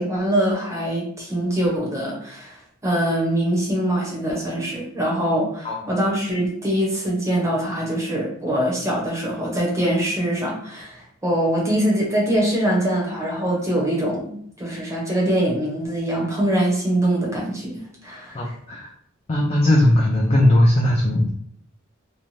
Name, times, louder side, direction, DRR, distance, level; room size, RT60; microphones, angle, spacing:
voice 1, 0.0-18.6, right 1 dB, 15° right, -3 dB, 0.6 m, -23 dB
voice 2, 18.3-18.9 19.3-21.3, left 1 dB, 30° left, -2 dB, 0.3 m, -18 dB
2.6 x 2.1 x 3.1 m, 0.64 s
head